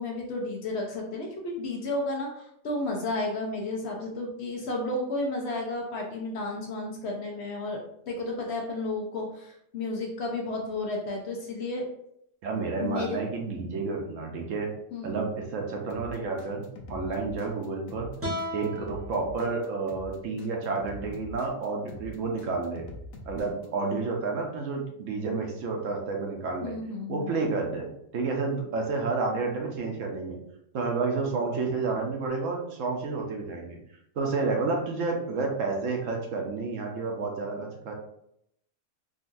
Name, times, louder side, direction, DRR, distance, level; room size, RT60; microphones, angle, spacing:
voice 1, 0.0-7.8 8.1-11.9 12.8-13.2 14.9-15.2 26.6-27.3, left 2 dB, 60° left, 0 dB, 0.8 m, -32 dB
voice 2, 12.4-14.7 15.0-16.6 16.9-18.1 18.5-22.8 23.2-26.8 27.1-30.4 30.7-33.8 34.2-37.9, right 4 dB, 70° right, 1 dB, 1.0 m, -30 dB
sound 1, 15.9-23.7, left 1 dB, 85° left, 1.0 m, -44 dB
sound 2, 18.2-21.4, equal, 10° right, 0.8 m, -39 dB
3.7 x 2.4 x 2.5 m, 0.74 s
omnidirectional pair, 1.4 m